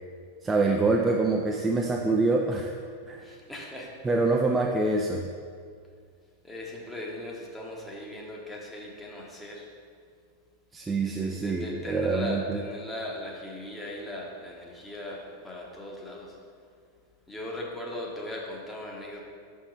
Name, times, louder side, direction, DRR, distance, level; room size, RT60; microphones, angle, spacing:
voice 1, 0.4-2.7 3.1-3.2 4.0-5.3 10.7-12.6, right 3 dB, 15° right, 1 dB, 0.4 m, -25 dB
voice 2, 3.2-3.9 6.4-9.7 11.0-16.4 17.3-19.2, left 1 dB, 5° left, -2 dB, 1.1 m, -38 dB
6.0 x 5.6 x 3.3 m, 2.1 s
figure-of-eight pair, 90°, 0 cm